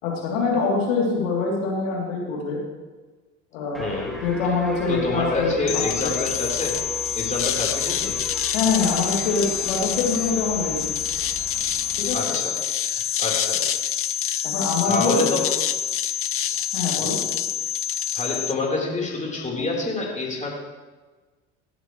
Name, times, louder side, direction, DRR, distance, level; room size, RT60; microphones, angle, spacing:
voice 1, 0.0-2.6 3.5-3.9 4.2-6.1 8.5-10.8 12.0-12.2 14.4-15.2 16.7-17.2, left 4 dB, 75° left, -2 dB, 3.3 m, -24 dB
sound 1, 3.7-12.2, right 1 dB, ahead, 2.0 m, -39 dB
voice 2, 3.8-4.2 4.9-6.8 7.1-8.1 12.1-12.5 12.8-13.6 14.8-15.5 17.0-17.2 18.1-20.5, left 3 dB, 20° left, -3 dB, 4.1 m, -27 dB
sound 2, 5.7-18.5, left 10 dB, 35° left, 0.7 m, -26 dB
16.5 x 9.1 x 3.2 m, 1.3 s
hypercardioid pair, 70°, 37 cm